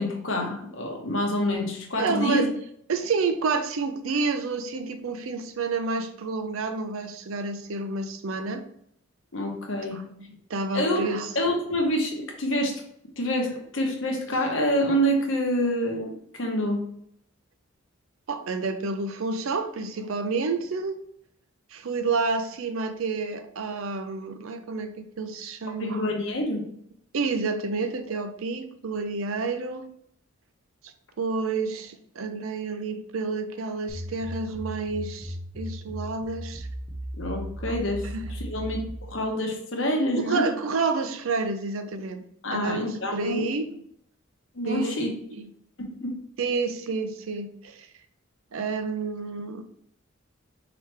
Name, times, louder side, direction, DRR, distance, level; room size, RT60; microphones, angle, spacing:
voice 1, 0.0-2.5 9.3-10.0 10.7-11.0 11.3-12.8 13.2-16.8 25.8-26.7 37.1-40.5 42.4-43.4 44.5-45.1 46.0-46.2, equal, 60° left, 2 dB, 0.9 m, -27 dB
voice 2, 2.0-2.5 2.9-8.6 9.9-10.1 10.5-11.3 18.3-21.0 21.7-26.0 27.1-29.9 30.8-36.7 37.7-37.8 38.0-38.3 40.2-42.2 42.5-43.7 44.7-45.0 45.3-45.5 46.4-47.9 48.5-49.6, right 4 dB, 70° right, 9 dB, 0.5 m, -29 dB
sound 1, 33.9-39.2, equal, 20° left, 0.9 m, -36 dB
4.8 x 2.9 x 3.3 m, 0.69 s
head